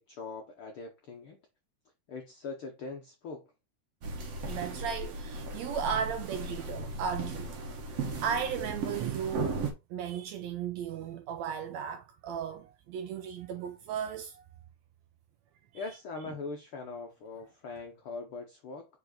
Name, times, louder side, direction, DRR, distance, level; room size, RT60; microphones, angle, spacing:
voice 1, 0.0-1.4 2.1-3.5 15.7-18.9, left 4 dB, 75° left, 1.2 m, -41 dB
sound 1, 4.0-9.7, right 3 dB, 55° right, 2.3 m, -36 dB
voice 2, 4.5-7.5 7.9-9.6 9.9-14.4 15.7-15.8, right 8 dB, 80° right, 1.6 m, -35 dB
5.3 x 4.6 x 4.1 m
omnidirectional pair, 3.6 m